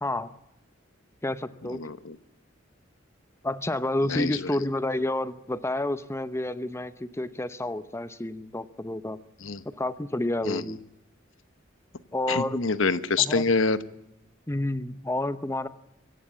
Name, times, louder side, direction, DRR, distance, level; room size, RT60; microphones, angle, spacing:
voice 1, 1.2-1.8 3.4-9.2 9.6-10.8 12.1-12.6 13.2-13.4 14.5-15.7, left 1 dB, 15° left, 13 dB, 0.8 m, -29 dB
voice 2, 1.8-2.1 4.1-4.3 9.4-9.6 10.4-10.6 12.3-13.8, left 4 dB, 75° left, 14 dB, 1.1 m, -25 dB
23.5 x 16.5 x 8.4 m, 0.88 s
head